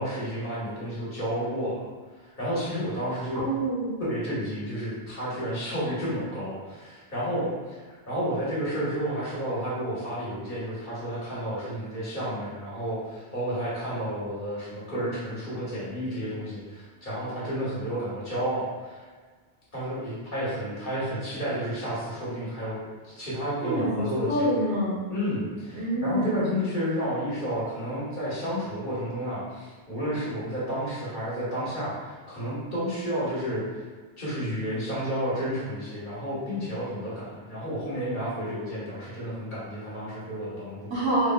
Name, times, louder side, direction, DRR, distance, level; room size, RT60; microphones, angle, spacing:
voice 1, 0.0-1.8 2.2-3.5 4.0-19.1 19.7-24.6 25.1-33.6 34.2-40.9, equal, 50° left, -8 dB, 1.5 m, -31 dB
voice 2, 3.3-4.0 23.6-25.0 25.7-26.4 40.9-41.3, right 1 dB, 90° right, -7 dB, 1.5 m, -26 dB
4.3 x 3.3 x 2.2 m, 1.5 s
omnidirectional pair, 1.1 m